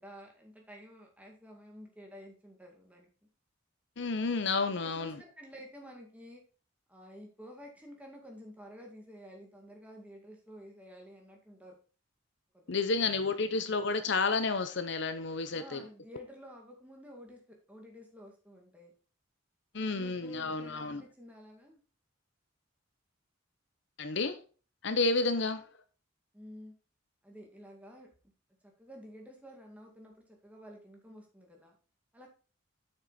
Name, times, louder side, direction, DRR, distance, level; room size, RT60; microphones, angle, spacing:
voice 1, 0.0-3.1 4.8-6.4 6.9-11.7 12.5-13.0 15.5-17.4 17.7-18.9 19.7-21.8 26.3-26.7 27.2-28.1 28.6-30.1 30.4-31.8 32.1-32.3, equal, 5° right, 1 dB, 2.1 m, -51 dB
voice 2, 4.0-5.1 12.7-15.8 19.7-21.0 24.0-24.4 24.8-25.6, left 3 dB, 60° left, 10 dB, 0.7 m, -30 dB
7.6 x 6.6 x 4.1 m, 0.36 s
head